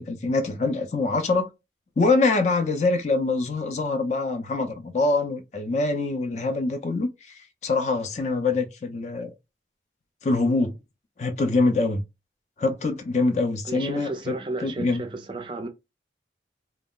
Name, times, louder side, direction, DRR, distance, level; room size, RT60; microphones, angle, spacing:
voice 1, 0.0-1.5 2.0-9.3 10.2-10.8 11.2-12.0 12.6-14.3 14.6-15.0, left 3 dB, 40° left, 0.4 m, -24 dB
voice 2, 13.6-15.7, right 3 dB, 25° right, 0.4 m, -33 dB
2.3 x 2.0 x 3.6 m
head